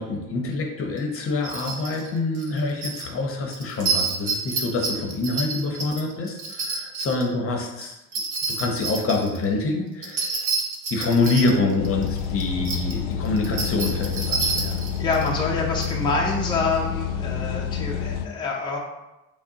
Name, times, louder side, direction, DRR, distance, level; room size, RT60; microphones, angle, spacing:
voice 1, 0.0-7.9 8.5-10.3 10.9-14.8, left 3 dB, 40° left, 2 dB, 0.8 m, -26 dB
sound 1, 1.0-1.1 1.4-2.1 2.3-3.1 3.5-7.3 7.8-9.4 10.0-12.9 13.3-15.3 15.8-15.9, right 4 dB, 65° right, 1.0 m, -28 dB
sound 2, 11.8-18.3, left 8 dB, 75° left, 0.5 m, -29 dB
voice 2, 15.0-18.8, left 3 dB, 15° left, -3 dB, 0.6 m, -26 dB
5.9 x 2.1 x 3.9 m, 0.99 s
cardioid pair, 115°, 33 cm